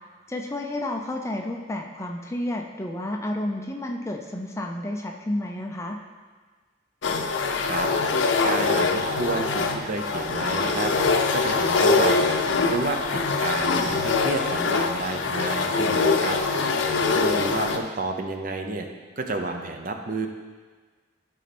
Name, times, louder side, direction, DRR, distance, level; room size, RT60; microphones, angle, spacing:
voice 1, 0.3-6.0 17.3-17.4, left 1 dB, 15° left, 2 dB, 0.5 m, -31 dB
sound 1, 7.0-17.8, left 4 dB, 75° left, 0.6 m, -23 dB
voice 2, 8.2-10.9 11.3-16.4 16.8-18.9 19.2-20.3, right 3 dB, 45° right, 4 dB, 0.7 m, -31 dB
12.5 x 4.2 x 4.2 m, 1.4 s
head